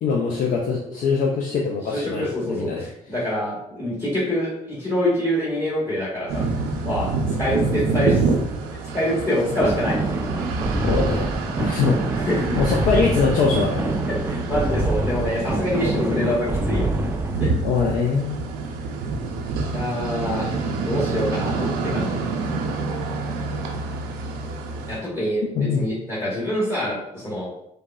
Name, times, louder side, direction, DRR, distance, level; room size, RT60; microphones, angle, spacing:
voice 1, 0.0-2.9 10.8-11.3 11.6-12.0 12.6-14.0 15.8-16.3 17.6-18.4 25.4-25.8, left 5 dB, 55° left, -1 dB, 0.4 m, -23 dB
voice 2, 1.9-6.5 6.8-8.3 8.7-10.2 12.1-12.6 14.1-16.9 17.4-17.5 19.7-22.1 24.9-27.5, equal, 20° left, -7 dB, 1.1 m, -26 dB
sound 1, 6.3-25.0, right 3 dB, 75° right, 0.5 m, -27 dB
sound 2, 9.6-17.4, right 2 dB, 15° right, 0.4 m, -25 dB
3.4 x 2.1 x 2.3 m, 0.80 s
hypercardioid pair, 55°, 16 cm